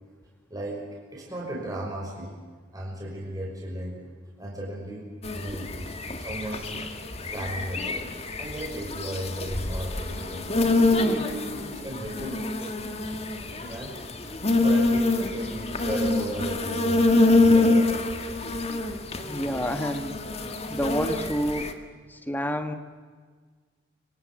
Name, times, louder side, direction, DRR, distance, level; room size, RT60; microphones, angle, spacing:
voice 1, 0.5-0.8 1.1-2.4 2.7-4.0 4.4-5.7 6.2-6.7 7.2-8.1 8.4-10.5 10.9-13.1 13.6-13.9 14.3-18.1, right 1 dB, 20° right, -3 dB, 6.1 m, -35 dB
sound 1, 5.2-21.7, left 2 dB, 35° left, 1.9 m, -26 dB
voice 2, 19.3-20.2 20.7-21.7 22.1-22.7, equal, 10° left, 7 dB, 1.7 m, -29 dB
26.0 x 25.0 x 7.7 m, 1.5 s
head